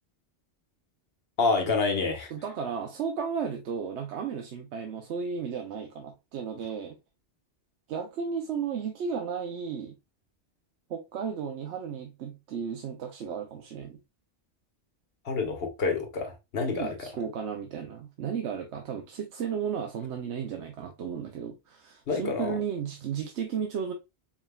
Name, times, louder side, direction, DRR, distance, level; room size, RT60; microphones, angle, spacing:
voice 1, 1.4-2.3 15.2-17.1 22.1-22.6, left 4 dB, 60° left, 1.3 m, -28 dB
voice 2, 2.3-7.0 7.9-9.9 10.9-14.0 16.7-23.9, right 6 dB, 75° right, 0.9 m, -34 dB
4.8 x 3.4 x 2.2 m
omnidirectional pair, 1.2 m